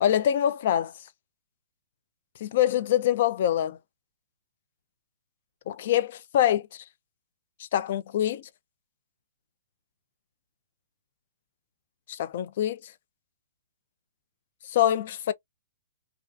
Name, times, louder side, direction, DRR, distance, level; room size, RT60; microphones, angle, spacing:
voice 1, 0.0-0.9 2.4-3.8 5.7-6.8 7.6-8.5 12.1-12.9 14.7-15.3, left 11 dB, 55° left, 0.3 m, -25 dB
2.3 x 2.2 x 2.4 m
hypercardioid pair, 140°, 0 cm